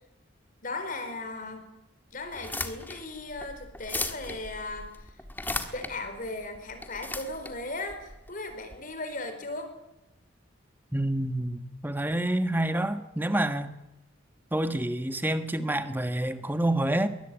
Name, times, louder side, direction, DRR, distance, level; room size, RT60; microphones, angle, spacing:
voice 1, 0.6-1.6 2.1-4.9 5.7-9.7, left 2 dB, 45° left, 4.3 m, -37 dB
sound 1, 2.3-8.8, left 2 dB, 10° left, 1.6 m, -37 dB
voice 2, 10.9-13.7 14.5-17.1, right 1 dB, 10° right, 1.5 m, -28 dB
22.5 x 20.5 x 9.0 m
head